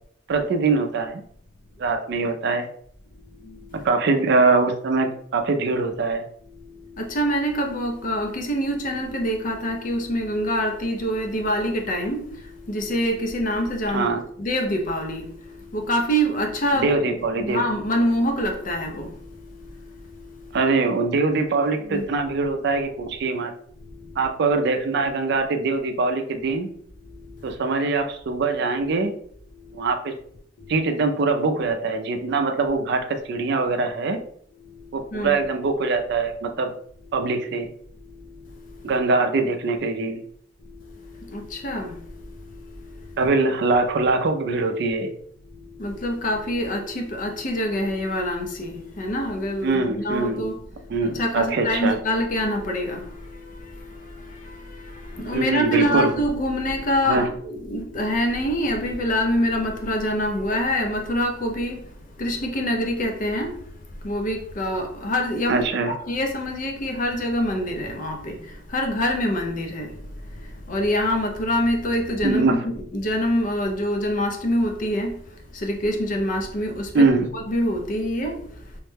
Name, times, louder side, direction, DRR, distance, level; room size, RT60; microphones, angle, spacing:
voice 1, 0.3-1.2 1.8-2.7 3.7-6.3 13.9-14.2 16.7-17.6 20.5-23.5 24.2-26.7 27.4-29.1 29.7-30.2 30.7-34.2 34.9-36.7 37.1-37.7 38.8-40.2 43.2-45.1 49.6-50.5 50.9-52.0 55.2-56.1 57.0-57.2 65.5-65.9 72.2-72.6 76.9-77.3, right 3 dB, 60° right, 0.4 m, -23 dB
voice 2, 3.4-3.9 6.5-14.1 14.4-20.6 21.8-22.1 23.8-24.2 27.1-27.6 29.6-29.7 30.6-30.7 34.6-35.4 38.1-38.9 40.7-43.2 45.5-50.6 50.9-61.8 62.2-63.6 64.0-65.6 66.1-69.9 70.4-75.2 75.5-77.1 77.3-78.4, equal, 45° left, 0.6 m, -26 dB
3.1 x 2.1 x 3.2 m
head